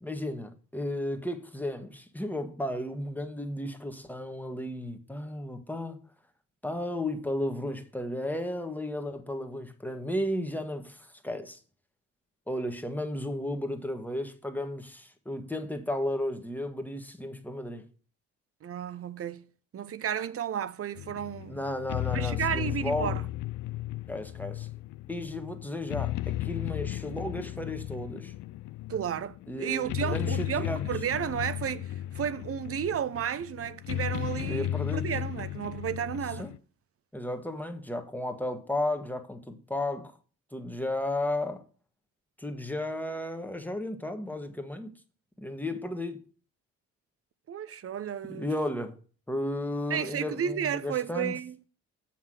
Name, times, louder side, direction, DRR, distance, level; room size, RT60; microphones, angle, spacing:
voice 1, 0.0-6.0 6.6-11.6 12.5-17.8 21.5-23.2 24.1-24.7 25.1-28.3 29.5-30.9 34.4-35.1 36.4-36.5 37.1-40.1 40.5-41.6 42.4-44.9 45.4-46.2 48.3-48.9 49.3-51.3, left 1 dB, 5° left, 1.4 m, -34 dB
voice 2, 18.6-19.4 19.7-21.6 22.1-23.2 28.9-36.5 47.5-48.5 49.9-51.6, right 9 dB, 45° right, 0.7 m, -32 dB
sound 1, 21.0-36.6, left 14 dB, 70° left, 0.5 m, -35 dB
7.2 x 5.9 x 6.3 m
supercardioid pair, 65°, 31 cm